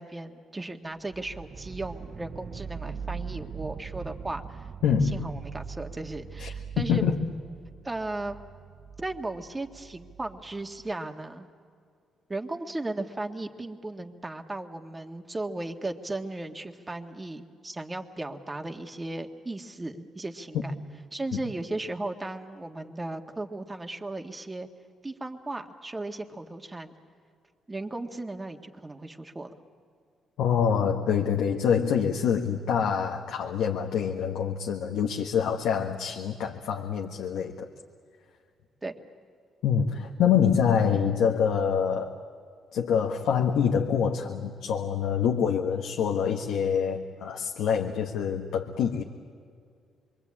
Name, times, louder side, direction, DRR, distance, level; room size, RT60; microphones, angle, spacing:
voice 1, 0.0-4.7 5.0-7.0 7.8-8.4 9.0-11.5 12.3-20.7 21.1-24.7 25.0-26.9 27.7-29.5 38.8-39.0, right 2 dB, 20° right, 5 dB, 1.8 m, -36 dB
sound 1, 1.1-10.9, right 6 dB, 50° right, 0.6 m, -41 dB
voice 2, 4.8-5.3 6.4-6.5 6.9-7.2 21.3-21.4 30.4-37.7 39.6-42.1 42.7-49.0, left 7 dB, 80° left, 2 dB, 1.4 m, -26 dB
27.0 x 23.0 x 8.7 m, 2.2 s
cardioid pair, 90°, 0 cm